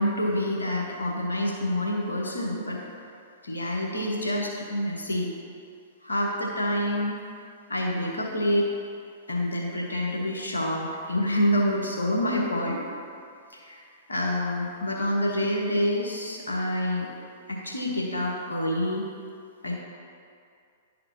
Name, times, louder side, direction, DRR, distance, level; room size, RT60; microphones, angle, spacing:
voice 1, 0.0-2.8 3.4-5.3 6.0-7.2 7.7-8.7 9.3-12.8 13.5-13.8 14.1-17.1 17.5-19.0 19.6-19.8, left 1 dB, 85° left, -2 dB, 1.2 m, -27 dB
11.0 x 4.2 x 2.8 m, 2.3 s
figure-of-eight pair, 110°, 0 cm